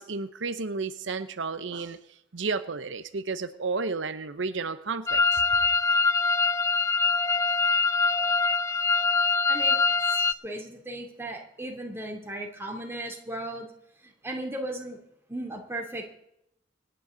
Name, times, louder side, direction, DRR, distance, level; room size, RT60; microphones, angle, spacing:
voice 1, 0.0-2.0 2.3-5.4, right 4 dB, 80° right, 11 dB, 0.8 m, -32 dB
sound 1, 5.1-10.3, left 4 dB, 15° left, 0.4 m, -23 dB
voice 2, 9.1-9.8 10.1-13.7 14.0-15.0 15.3-16.1, right 1 dB, 15° right, 1 dB, 2.9 m, -36 dB
25.5 x 10.0 x 3.9 m, 0.78 s
head